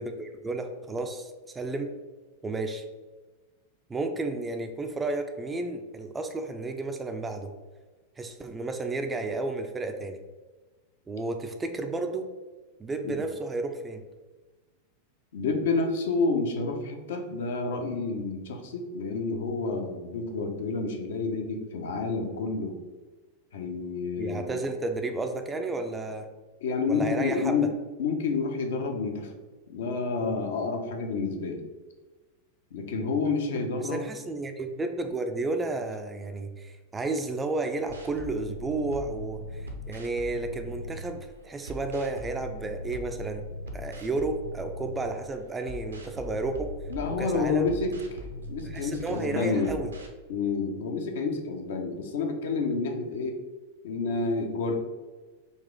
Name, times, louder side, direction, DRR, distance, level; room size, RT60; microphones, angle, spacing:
voice 1, 0.0-1.9 2.4-2.8 3.9-7.5 8.2-10.2 11.1-12.3 12.8-14.0 24.2-26.3 26.9-27.6 33.8-43.4 43.7-46.7 47.1-47.7 48.6-49.9, right 2 dB, 15° right, 6 dB, 0.3 m, -32 dB
voice 2, 15.3-22.8 23.5-24.6 26.6-27.7 28.0-29.3 29.7-31.6 32.7-34.1 46.9-47.9 48.5-49.8 50.3-53.3 53.8-54.7, left 4 dB, 60° left, 4 dB, 0.5 m, -29 dB
sound 1, 37.9-41.2 41.7-45.2 45.7-50.1, equal, 75° right, 0.5 m, -40 dB
4.0 x 2.4 x 3.5 m, 1.3 s
figure-of-eight pair, 90°, 0 cm